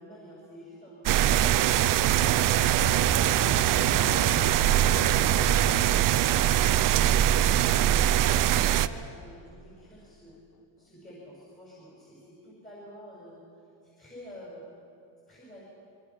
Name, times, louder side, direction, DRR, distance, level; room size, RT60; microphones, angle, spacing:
voice 1, 0.0-5.7 6.1-10.4 10.8-13.4 13.8-14.8 15.3-15.6, equal, 15° left, -6 dB, 6.8 m, -49 dB
sound 1, 1.1-8.9, right 12 dB, 45° right, 0.7 m, -22 dB
sound 2, 2.1-10.0 10.6-10.7, left 8 dB, 55° left, 1.2 m, -41 dB
26.5 x 24.0 x 6.1 m, 2.7 s
cardioid pair, 165°, 47 cm